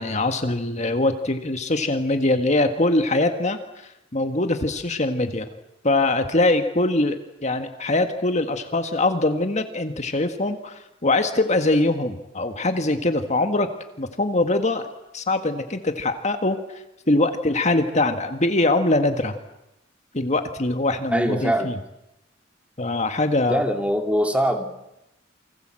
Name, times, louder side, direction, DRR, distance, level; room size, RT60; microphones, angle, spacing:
voice 1, 0.0-3.6 4.1-5.5 5.8-13.7 14.0-14.9 15.1-16.6 17.1-19.4 20.1-21.8 22.8-23.6, left 2 dB, 35° left, 7 dB, 1.7 m, -22 dB
voice 2, 21.1-21.7 23.5-24.7, equal, 5° right, 5 dB, 2.6 m, -22 dB
29.0 x 25.0 x 7.7 m, 0.88 s
head